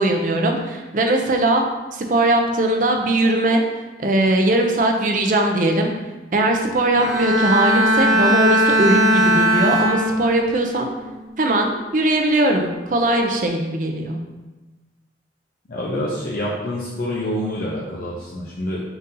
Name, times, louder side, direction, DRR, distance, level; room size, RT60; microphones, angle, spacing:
voice 1, 0.0-1.6 1.9-3.6 4.0-5.9 6.3-10.9 11.4-14.2, right 1 dB, 45° right, 3 dB, 0.5 m, -19 dB
Bowed string instrument, 6.9-10.5 11.0-11.4, right 1 dB, 80° right, 1.1 m, -18 dB
voice 2, 15.7-18.8, left 1 dB, 50° left, -6 dB, 0.5 m, -27 dB
3.9 x 2.7 x 3.7 m, 1.2 s
head